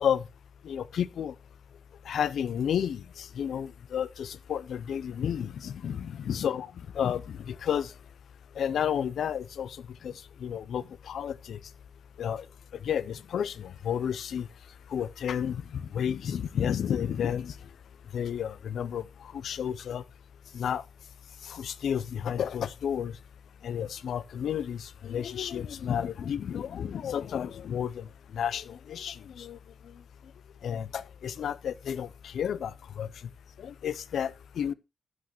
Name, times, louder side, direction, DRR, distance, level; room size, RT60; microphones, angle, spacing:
voice 1, 0.6-1.3 2.1-6.7 6.9-7.9 8.6-9.8 10.0-10.1 10.4-11.6 12.2-12.4 12.8-14.5 14.9-17.5 18.1-19.0 19.3-20.0 20.5-20.8 21.4-23.1 23.6-28.1 28.3-29.6 30.6-33.1 33.6-34.7, left 8 dB, 90° left, 0.5 m, -31 dB
12.5 x 8.7 x 2.9 m
wide cardioid pair, 140°, 0 cm